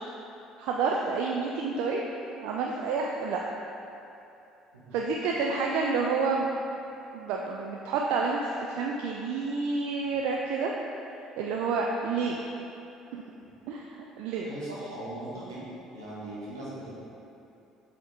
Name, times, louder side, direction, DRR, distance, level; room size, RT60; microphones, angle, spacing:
voice 1, 0.6-2.1 2.4-3.4 4.9-6.5 7.1-10.7 11.4-12.4 13.1-13.2 13.7-14.5, right 4 dB, 60° right, -1 dB, 0.4 m, -29 dB
voice 2, 14.4-15.6 15.9-17.0, right 1 dB, 80° right, -8 dB, 1.2 m, -39 dB
7.4 x 3.6 x 3.7 m, 2.8 s
figure-of-eight pair, 55°, 2 cm